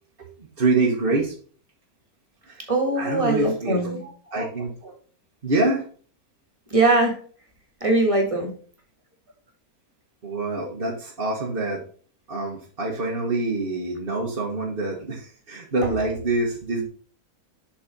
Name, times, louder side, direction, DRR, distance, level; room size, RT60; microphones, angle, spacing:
voice 1, 0.6-1.3 2.4-2.7 3.0-4.9 5.4-5.8 10.2-11.8 12.3-16.9, right 2 dB, 40° right, -2 dB, 1.5 m, -26 dB
voice 2, 2.7-4.0 6.7-7.2 7.8-8.5, right 2 dB, 20° right, 1 dB, 1.8 m, -21 dB
7.3 x 4.1 x 5.2 m, 0.43 s
omnidirectional pair, 1.6 m